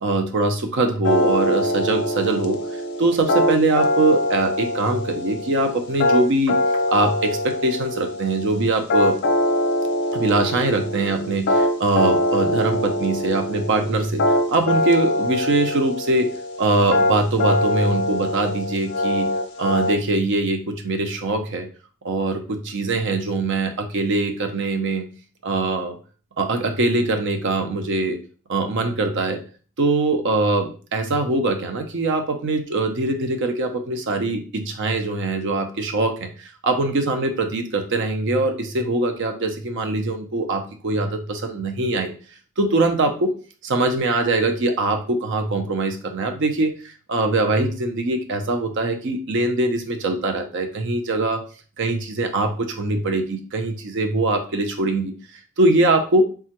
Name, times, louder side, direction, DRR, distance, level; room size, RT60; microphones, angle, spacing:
voice 1, 0.0-2.6 3.0-6.6 6.9-9.2 10.1-16.3 16.6-19.3 19.6-21.7 22.0-25.1 25.4-26.0 26.4-28.2 28.5-29.4 29.8-42.1 42.6-43.3 43.6-51.4 51.8-55.1 55.6-56.2, right 2 dB, 55° right, 5 dB, 0.5 m, -22 dB
sound 1, 1.0-19.9, left 1 dB, 55° left, 0.5 m, -23 dB
3.4 x 2.1 x 2.8 m, 0.39 s
head